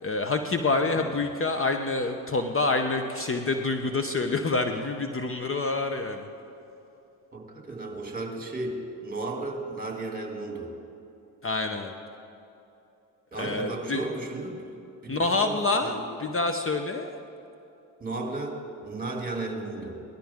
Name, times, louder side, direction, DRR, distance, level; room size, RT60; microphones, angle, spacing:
voice 1, 0.0-6.3 11.4-11.9 13.4-14.0 15.1-17.1, left 3 dB, 30° left, 6 dB, 0.9 m, -27 dB
voice 2, 7.3-10.8 13.3-14.7 15.0-16.1 18.0-20.0, right 2 dB, 20° right, 2 dB, 2.5 m, -34 dB
18.5 x 12.5 x 3.6 m, 2.9 s
supercardioid pair, 60°, 41 cm